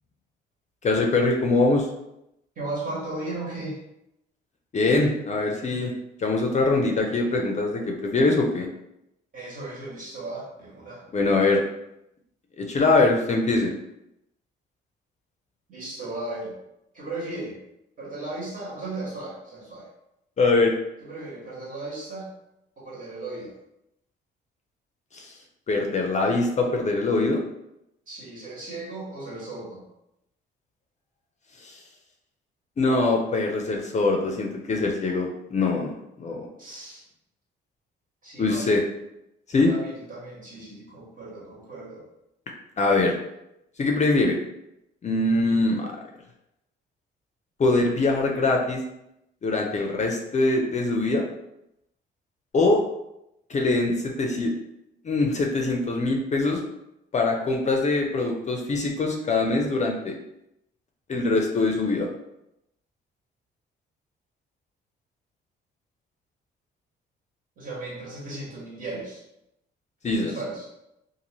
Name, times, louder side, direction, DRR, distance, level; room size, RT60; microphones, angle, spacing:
voice 1, 0.8-1.9 4.7-5.9 6.2-8.7 11.1-11.6 12.6-13.7 20.4-20.7 25.1-25.3 25.7-27.4 31.6-31.7 32.8-36.5 38.4-38.8 39.5-39.7 42.8-43.2 43.8-44.4 45.0-45.9 47.6-48.8 49.4-51.2 52.5-52.8 53.5-54.5 55.0-56.6 57.1-60.1 61.1-62.1 70.0-70.3, left 3 dB, 35° left, 1 dB, 0.5 m, -23 dB
voice 2, 2.6-3.8 9.3-11.0 15.7-16.5 16.9-17.6 18.0-19.9 21.0-22.3 22.8-23.5 28.1-29.8 36.6-37.0 38.2-38.7 39.5-42.0 67.6-69.2 70.2-70.7, right 2 dB, 45° right, -5 dB, 1.3 m, -36 dB
2.6 x 2.5 x 3.0 m, 0.84 s
cardioid pair, 90°, 20 cm